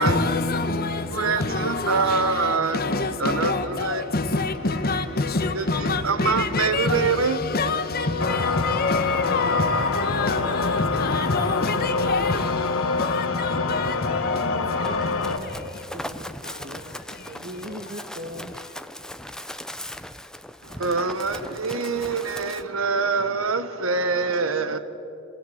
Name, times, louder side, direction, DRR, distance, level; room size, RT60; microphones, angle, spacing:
voice 1, 0.0-15.9 16.4-17.4, left 3 dB, 50° left, 1.2 m, -27 dB
voice 2, 0.9-2.9 3.2-4.1 5.5-7.4 20.6-24.8, right 4 dB, 90° right, 1.3 m, -25 dB
sound 1, 8.2-15.4, left 4 dB, 85° left, 1.4 m, -26 dB
voice 3, 10.3-10.9 14.4-15.5 15.9-16.3 16.6-16.9 17.3-18.5, equal, 55° right, 1.5 m, -39 dB
Run, 14.8-22.6, left 1 dB, 5° left, 0.7 m, -38 dB
28.5 x 17.5 x 8.0 m
head